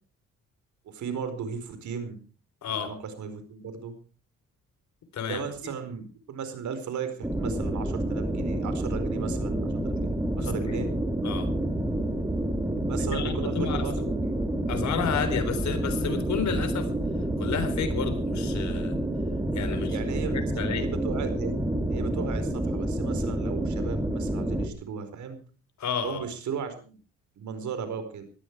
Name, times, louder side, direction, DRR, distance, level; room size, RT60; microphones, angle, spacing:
voice 1, 0.8-2.2 2.8-3.9 5.2-10.1 10.4-10.9 12.9-14.3 19.7-21.5 21.9-25.4 26.0-27.0 27.4-28.2, right 6 dB, 70° right, 9 dB, 4.6 m, -36 dB
voice 2, 2.6-2.9 5.1-5.4 10.4-10.8 11.2-11.5 13.1-13.9 14.7-16.9 17.4-19.0 19.5-20.0 20.3-20.9 25.8-26.2, left 7 dB, 65° left, 9 dB, 4.0 m, -31 dB
sound 1, 7.2-24.7, right 1 dB, 10° right, 2.8 m, -28 dB
19.0 x 14.0 x 4.8 m, 0.38 s
cardioid pair, 90°, 30 cm